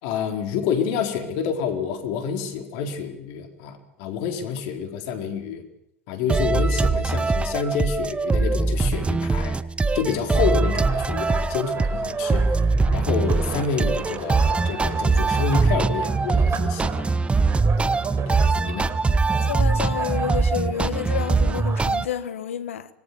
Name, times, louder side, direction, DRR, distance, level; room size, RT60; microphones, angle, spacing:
voice 1, 0.0-5.6 6.1-9.6 9.9-12.6 12.9-17.1 17.8-18.0 18.3-18.9, left 6 dB, 65° left, 4.5 m, -28 dB
sound 1, 6.3-22.1, right 3 dB, 15° right, 1.0 m, -22 dB
sound 2, 10.1-21.9, right 6 dB, 40° right, 4.8 m, -37 dB
voice 2, 19.5-22.9, left 9 dB, 85° left, 1.5 m, -29 dB
25.5 x 21.0 x 7.1 m
hypercardioid pair, 80°, 7 cm